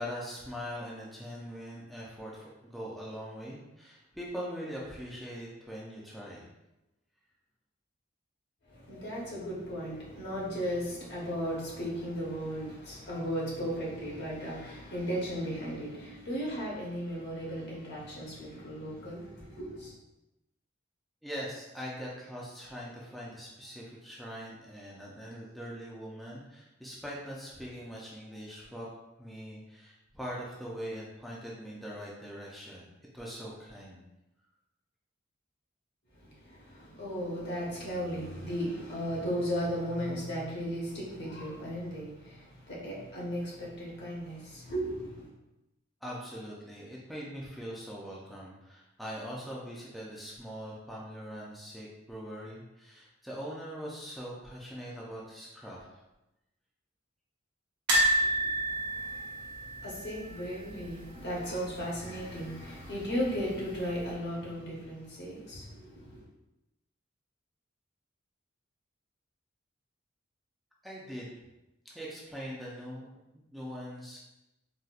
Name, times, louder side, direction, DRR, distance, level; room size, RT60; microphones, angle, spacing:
voice 1, 0.0-6.5 21.2-28.9 29.2-32.9 33.1-34.0 46.0-56.0 70.8-71.3 71.8-73.1 73.3-74.2, equal, ahead, -6 dB, 0.4 m, -42 dB
voice 2, 8.7-19.9 36.2-45.3 58.0-66.2, equal, 60° left, -5 dB, 1.0 m, -36 dB
sound 1, 57.9-60.9 61.2-61.4 61.7-61.8 63.0-63.5 64.0-64.1, right 1 dB, 60° right, 0.8 m, -29 dB
4.0 x 2.2 x 2.4 m, 0.94 s
head